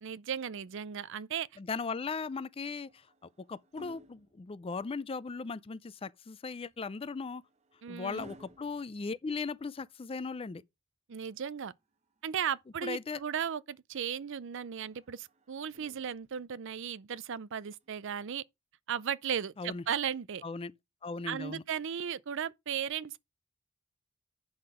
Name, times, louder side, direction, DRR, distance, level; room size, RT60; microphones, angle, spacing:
voice 1, 0.0-1.5 7.8-8.3 11.1-11.7 12.2-18.4 18.9-20.4 21.3-23.2, right 8 dB, 65° right, 0.5 m, -36 dB
voice 2, 1.6-3.1 3.4-7.4 7.9-10.6 12.8-13.2 19.6-19.8 20.4-20.7 21.0-21.6, left 4 dB, 25° left, 0.4 m, -38 dB
sound 1, 2.6-5.1 6.7-9.8 11.6-12.8 14.8-16.6 17.8-18.0, right 1 dB, 35° right, 0.8 m, -58 dB
8.6 x 5.9 x 4.9 m
head